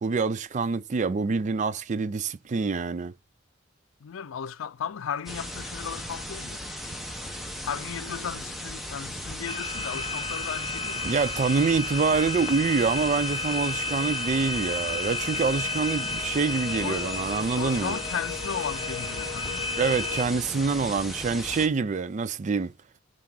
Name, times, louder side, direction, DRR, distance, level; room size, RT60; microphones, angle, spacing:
voice 1, 0.0-3.1 11.0-18.0 19.8-22.7, right 5 dB, 40° right, 0.4 m, -26 dB
voice 2, 4.0-6.6 7.6-11.1 16.8-17.1 17.6-19.7, left 7 dB, 90° left, 0.4 m, -35 dB
Tape Hiss from Blank Tape - No NR, 5.3-21.7, equal, ahead, 1.1 m, -37 dB
sound 1, 9.5-20.3, left 4 dB, 30° left, 1.2 m, -32 dB
5.8 x 3.7 x 6.0 m
head